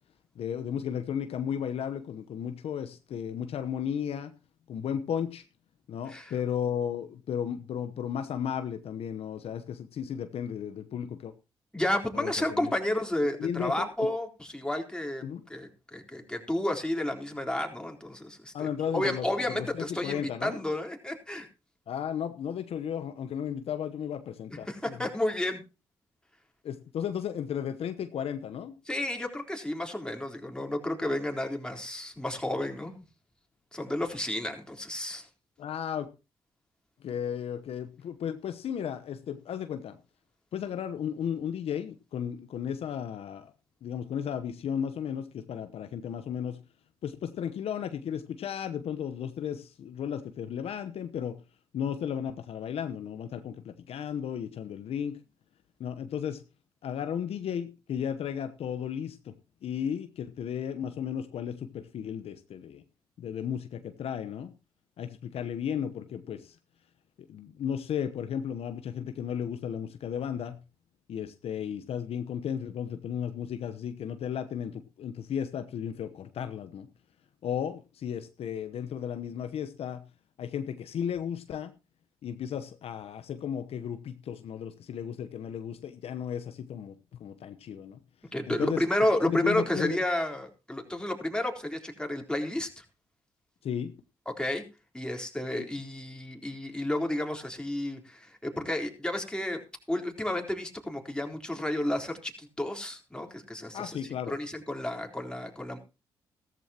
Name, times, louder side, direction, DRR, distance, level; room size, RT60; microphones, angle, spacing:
voice 1, 0.4-4.3 4.7-5.4 5.9-11.3 12.1-12.7 13.4-13.9 15.2-15.4 18.5-19.3 19.5-20.6 21.9-25.1 26.6-28.8 35.6-36.1 37.0-40.0 40.5-43.5 43.8-46.6 47.0-51.4 51.7-55.2 55.8-56.4 56.8-59.3 59.6-62.8 63.2-64.5 65.0-66.6 67.3-70.6 71.1-76.9 77.4-80.0 80.4-81.7 82.2-88.0 88.5-88.8 89.2-90.0 93.6-93.9 95.5-95.7 103.7-104.3, left 8 dB, 65° left, 9 dB, 1.0 m, -34 dB
voice 2, 11.7-15.2 15.5-21.5 24.5-25.6 28.9-32.9 33.7-35.3 88.3-92.8 94.4-94.6 94.9-99.6 99.9-105.8, left 1 dB, 10° left, 2 dB, 3.9 m, -31 dB
15.0 x 14.0 x 2.9 m, 0.30 s
hypercardioid pair, 45°, 11 cm